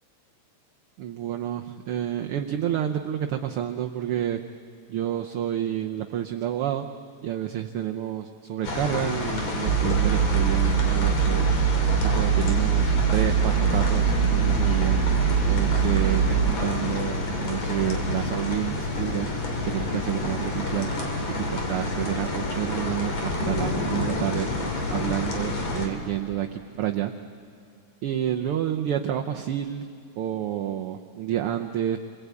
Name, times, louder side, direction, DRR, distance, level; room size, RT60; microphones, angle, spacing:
voice 1, 1.0-4.4 4.9-6.9 7.2-11.5 12.1-15.0 15.5-19.3 19.6-20.9 21.3-24.5 24.9-27.1 28.0-29.8 30.2-32.0, right 11 dB, 70° right, 4 dB, 1.3 m, -29 dB
sound 1, 8.6-25.9, left 2 dB, 60° left, 3.9 m, -29 dB
sound 2, 9.7-16.5, right 8 dB, 35° right, 3.7 m, -23 dB
29.0 x 22.0 x 8.3 m, 2.4 s
omnidirectional pair, 3.3 m